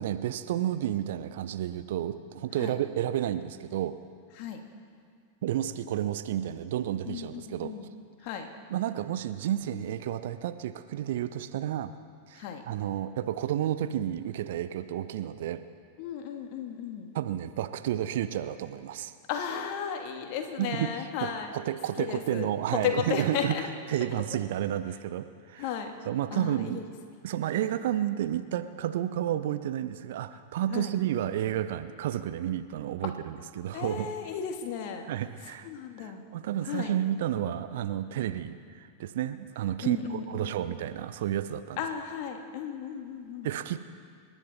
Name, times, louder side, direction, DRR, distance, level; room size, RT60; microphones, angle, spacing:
voice 1, 0.0-4.0 5.4-7.7 8.7-11.9 12.3-15.6 17.1-19.1 20.6-23.6 23.9-25.7 26.0-26.9 27.2-34.1 35.1-35.7 36.0-41.8 43.4-43.8, right 11 dB, 55° right, 11 dB, 0.7 m, -31 dB
voice 2, 7.1-7.9 8.2-8.5 12.3-12.6 16.0-17.1 19.3-21.5 22.0-22.5 22.8-23.7 25.6-25.9 26.3-26.8 27.5-27.7 30.7-30.9 33.0-33.1 33.7-35.1 35.6-36.2 36.6-36.9 39.8-40.7 41.8-43.5, left 8 dB, 45° left, 5 dB, 1.8 m, -34 dB
27.0 x 10.5 x 4.2 m, 2.2 s
figure-of-eight pair, 90°, 0 cm